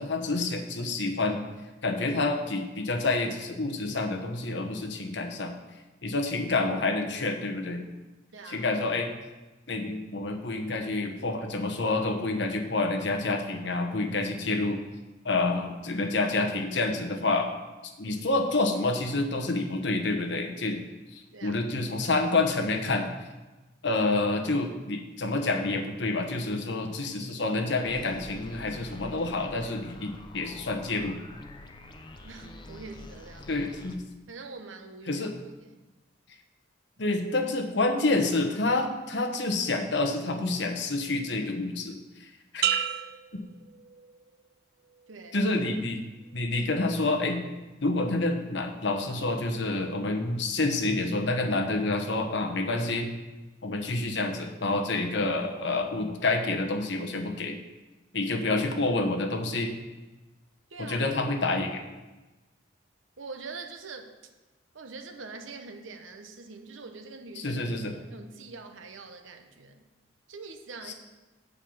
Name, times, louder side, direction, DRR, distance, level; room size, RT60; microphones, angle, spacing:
voice 1, 0.0-1.4 1.8-5.6 6.0-7.8 8.5-9.1 9.7-14.8 15.2-17.5 18.0-20.8 21.1-23.1 23.8-31.2 33.5-34.0 35.1-35.3 37.0-42.3 42.5-42.6 43.3-43.4 45.3-46.0 46.3-47.4 47.8-53.1 53.6-57.6 58.1-59.7 60.8-61.8 67.4-67.9 70.9-71.0, left 2 dB, 65° left, 4 dB, 1.1 m, -28 dB
voice 2, 8.3-8.6 21.3-21.6 32.2-33.7 34.3-35.2 35.6-35.8 45.1-45.4 60.7-61.0 63.2-64.1 64.7-67.6 67.9-69.8 70.3-70.9, right 4 dB, 85° right, 6 dB, 1.0 m, -44 dB
sound 1, 27.8-34.0, left 1 dB, 25° left, 0.6 m, -46 dB
sound 2, 42.6-44.4 44.9-45.4, right 10 dB, 55° right, 0.4 m, -32 dB
8.2 x 5.5 x 7.2 m, 1.1 s
head